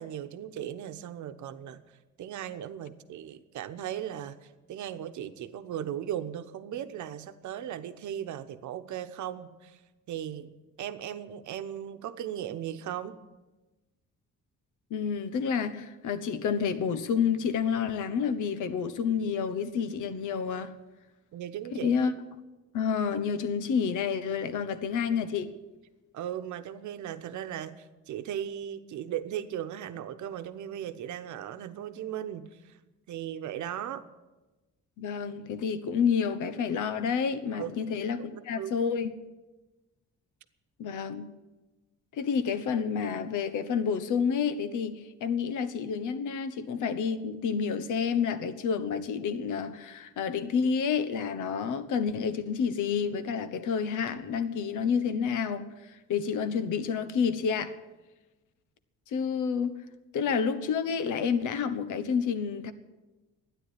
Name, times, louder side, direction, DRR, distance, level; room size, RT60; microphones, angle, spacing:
voice 1, 0.0-9.8 10.1-13.2 21.3-21.9 26.1-32.8 33.1-34.1 37.5-37.9 38.2-38.9, right 10 dB, 75° right, 1.0 m, -37 dB
voice 2, 14.9-20.7 21.8-22.1 22.7-25.5 35.0-39.1 40.8-41.3 42.1-57.7 59.1-59.7 60.1-62.7, left 6 dB, 80° left, 1.1 m, -29 dB
13.0 x 9.7 x 9.8 m
cardioid pair, 90°, 30 cm